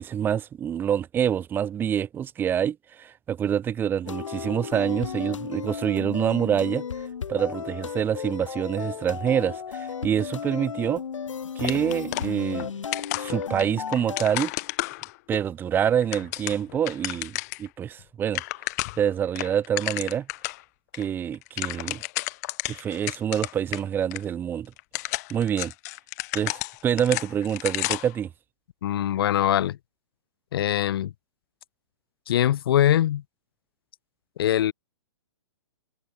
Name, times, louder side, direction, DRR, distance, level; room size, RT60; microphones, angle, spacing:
voice 1, 0.0-6.8 7.3-11.0 11.6-12.7 13.1-14.5 15.3-18.4 19.0-20.3 20.9-22.0 22.7-24.7 25.3-25.7 26.3-28.3, right 9 dB, 15° right, 2.5 m, -26 dB
sound 1, 4.0-14.2, left 7 dB, 85° left, 4.2 m, -34 dB
sound 2, 11.6-12.7 12.9-15.4 15.9-17.7 18.0-18.1 18.3-19.1 19.4-20.6 20.9-21.0 21.3-23.8 24.1-24.2 24.8-28.2, left 22 dB, 35° left, 4.0 m, -32 dB
voice 2, 28.8-29.8 30.5-31.1 32.3-33.2 34.4-34.7, left 11 dB, 50° left, 2.3 m, -22 dB
hypercardioid pair, 160°, 16 cm